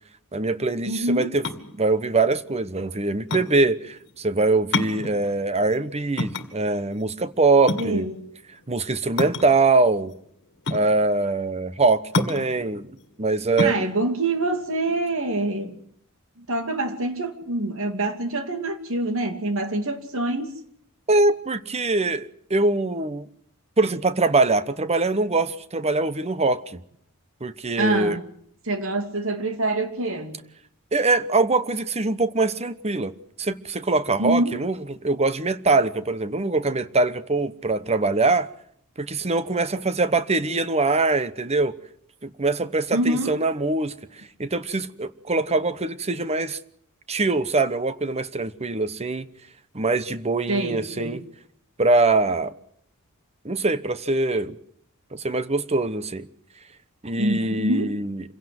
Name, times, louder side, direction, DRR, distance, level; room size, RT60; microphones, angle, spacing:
voice 1, 0.3-1.4 1.8-8.0 8.7-10.1 10.7-12.9 13.2-13.7 21.1-23.3 23.8-26.8 27.4-28.2 30.9-33.1 33.4-34.7 35.0-38.5 39.0-41.8 42.2-43.9 44.4-46.6 47.1-49.3 49.7-51.2 51.8-52.5 53.4-54.6 55.1-56.3 57.0-58.2, right 3 dB, 30° right, 1.0 m, -23 dB
voice 2, 0.8-1.3 7.8-8.2 13.6-15.8 16.4-20.5 27.8-28.2 28.6-30.4 34.2-34.6 42.9-43.3 50.5-51.2 57.1-57.9, right 2 dB, 65° right, 2.6 m, -25 dB
sound 1, 1.3-15.6, left 2 dB, 55° left, 2.1 m, -30 dB
27.0 x 17.0 x 7.9 m
head